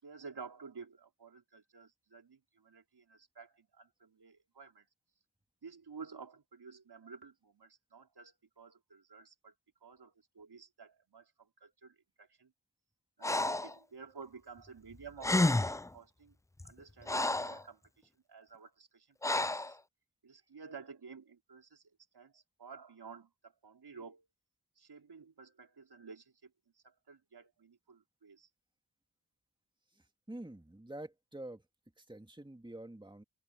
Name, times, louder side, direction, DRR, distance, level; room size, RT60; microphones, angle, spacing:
voice 1, 0.0-4.9 5.6-9.5 9.8-12.5 13.2-16.4 16.6-17.8 18.3-19.8 20.2-21.8 22.1-24.3 24.8-28.5, right 5 dB, 80° right, 4.2 m, -53 dB
Breathing, 13.2-13.7 14.9-15.0 15.2-15.9 16.6-17.6 19.2-19.7, left 2 dB, 10° left, 0.3 m, -30 dB
voice 2, 29.9-31.6 32.0-33.2, right 1 dB, 10° right, 2.2 m, -47 dB
open air
wide cardioid pair, 60°, 39 cm